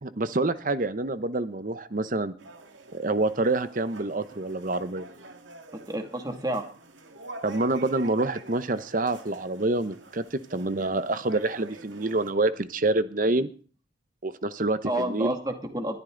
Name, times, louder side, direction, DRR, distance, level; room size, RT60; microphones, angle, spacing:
voice 1, 0.0-2.3 2.9-5.1 7.4-13.5 14.2-15.3, right 2 dB, 45° right, 12 dB, 0.9 m, -27 dB
sound 1, 2.4-12.3, right 2 dB, 85° right, 2.1 m, -46 dB
voice 2, 5.9-6.6 14.8-16.0, right 1 dB, 20° right, 5 dB, 2.3 m, -29 dB
21.0 x 13.5 x 3.9 m, 0.40 s
head